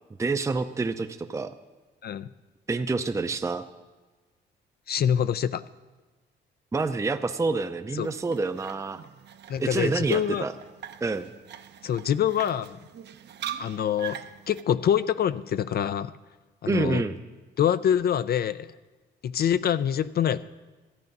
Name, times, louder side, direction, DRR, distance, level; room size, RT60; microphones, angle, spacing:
voice 1, 0.2-1.5 2.7-3.6 6.7-9.0 9.6-10.5 11.0-11.3 16.7-17.2, right 3 dB, 15° right, 8 dB, 0.5 m, -27 dB
voice 2, 4.9-5.6 7.9-8.1 9.5-10.4 11.8-12.8 13.6-14.2 14.5-16.1 16.6-17.0 17.6-18.7 19.2-20.4, left 9 dB, 50° left, 15 dB, 0.4 m, -25 dB
sound 1, 8.0-14.6, right 9 dB, 60° right, 0.8 m, -42 dB
13.0 x 9.1 x 5.4 m, 1.3 s
cardioid pair, 90°, 20 cm